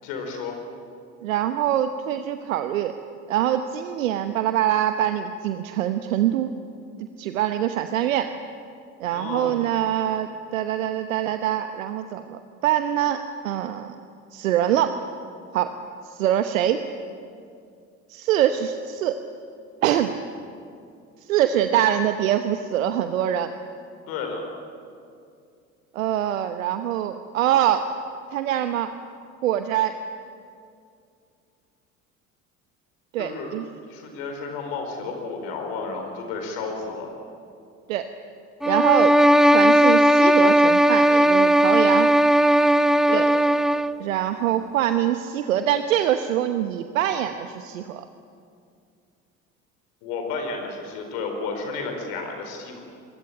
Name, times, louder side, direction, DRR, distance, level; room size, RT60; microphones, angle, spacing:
voice 1, 0.0-0.6 9.1-9.6 24.1-24.4 33.2-33.5 33.9-37.1 43.1-43.2 50.0-52.8, left 4 dB, 65° left, 4 dB, 4.8 m, -32 dB
voice 2, 1.2-2.9 3.3-6.5 7.2-8.3 9.0-14.0 14.3-14.9 15.5-15.7 16.0-16.8 18.1-19.2 19.8-20.1 21.2-23.5 25.9-27.9 28.3-28.9 29.4-29.9 33.1-33.7 37.9-38.1 38.7-39.2 39.4-42.1 43.1-43.3 44.0-48.0, right 11 dB, 70° right, 9 dB, 1.1 m, -24 dB
sound 1, 38.6-44.0, equal, ahead, 0.6 m, -17 dB
28.0 x 23.0 x 8.8 m, 2.4 s
figure-of-eight pair, 55°, 41 cm